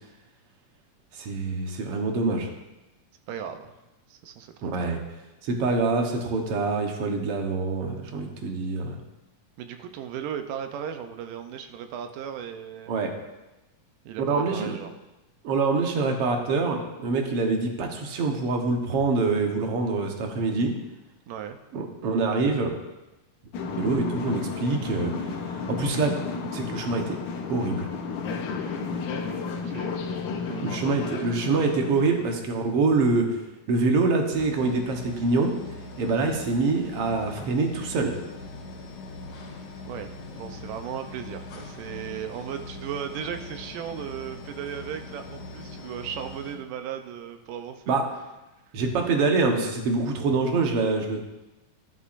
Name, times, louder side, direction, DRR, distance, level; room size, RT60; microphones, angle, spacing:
voice 1, 1.1-2.5 4.6-5.0 5.4-9.0 12.9-13.1 14.3-14.8 15.4-20.7 21.7-22.7 23.8-26.2 26.5-27.2 27.5-27.9 30.6-33.4 33.7-35.5 36.0-38.1 47.9-48.1 48.7-51.2, right 3 dB, 60° right, 3 dB, 1.6 m, -25 dB
voice 2, 3.3-3.7 4.1-4.9 9.6-12.9 14.1-14.9 21.3-21.6 29.4-30.0 30.3-30.7 39.8-48.0, right 9 dB, 80° right, 7 dB, 2.3 m, -36 dB
sound 1, 23.5-32.4, left 4 dB, 70° left, 2.3 m, -32 dB
sound 2, 34.3-46.6, left 2 dB, 55° left, 3.0 m, -41 dB
13.0 x 11.5 x 2.6 m, 1.0 s
omnidirectional pair, 3.9 m